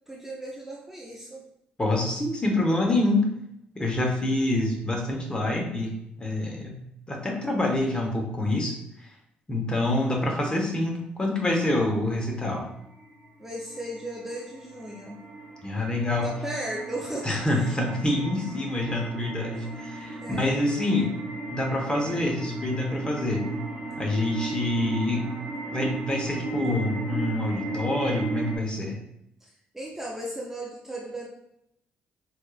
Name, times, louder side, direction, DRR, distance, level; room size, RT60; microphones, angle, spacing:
voice 1, 0.1-1.5 13.4-15.2 16.2-17.8 20.2-20.5 29.4-31.3, right 1 dB, 10° right, -2 dB, 0.6 m, -36 dB
voice 2, 1.8-3.3 3.7-5.9 6.2-6.8 7.1-8.8 9.5-12.7 15.6-16.3 17.2-21.1 21.5-23.5 24.0-25.3 25.7-29.0, left 1 dB, 25° left, 0 dB, 0.9 m, -26 dB
sound 1, 12.3-28.6, right 2 dB, 35° right, 1.1 m, -36 dB
4.2 x 2.5 x 2.4 m, 0.80 s
supercardioid pair, 70°, 4 cm